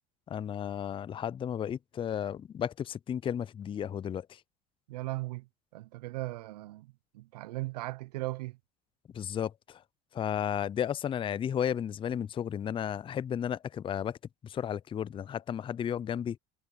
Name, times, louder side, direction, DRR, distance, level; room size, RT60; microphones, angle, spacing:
voice 1, 0.3-4.4 9.1-9.8 10.1-14.2 14.4-16.4, left 9 dB, 25° left, 0.4 m, -33 dB
voice 2, 4.9-5.5 5.7-8.6, right 19 dB, 85° right, 0.6 m, -38 dB
hypercardioid pair, 80°, 20 cm